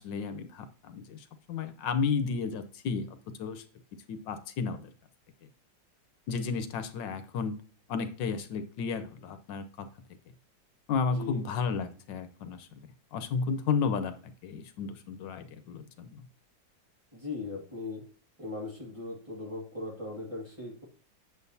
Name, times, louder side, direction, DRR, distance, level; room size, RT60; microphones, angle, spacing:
voice 1, 0.0-3.6 4.1-4.8 6.3-7.6 7.9-9.9 10.9-12.7 13.1-16.2, left 5 dB, 80° left, 10 dB, 1.5 m, -33 dB
voice 2, 11.1-11.5 17.1-18.0 18.4-20.8, left 3 dB, 15° right, -3 dB, 2.1 m, -38 dB
8.6 x 7.1 x 2.7 m, 0.40 s
omnidirectional pair, 2.0 m